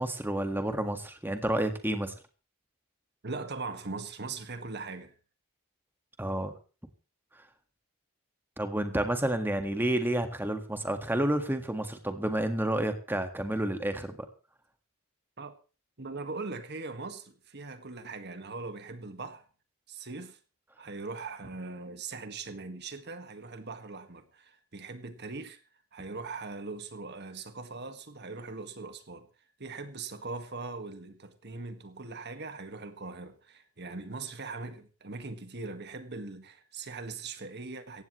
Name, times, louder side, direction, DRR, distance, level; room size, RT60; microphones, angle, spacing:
voice 1, 0.0-2.1 6.2-6.5 8.6-14.2, right 1 dB, 10° right, 1.6 m, -30 dB
voice 2, 3.2-5.1 15.4-15.6 16.0-19.4 19.9-20.4 20.8-25.6 25.9-29.3 29.6-38.0, right 3 dB, 50° right, 1.7 m, -40 dB
18.0 x 15.5 x 3.1 m
head